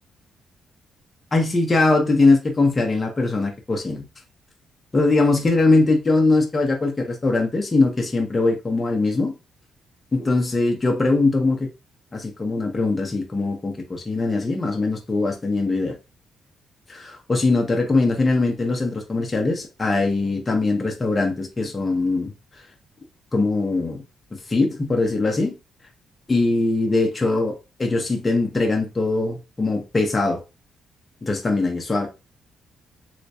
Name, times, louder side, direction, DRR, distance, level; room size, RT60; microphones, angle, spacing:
voice 1, 1.3-4.0 4.9-9.3 10.1-11.7 12.1-15.9 16.9-22.3 23.3-24.0 24.5-25.5 26.3-30.4 31.2-32.1, left 3 dB, 20° left, 0.7 m, -21 dB
3.3 x 2.9 x 2.7 m
cardioid pair, 125°, 0 cm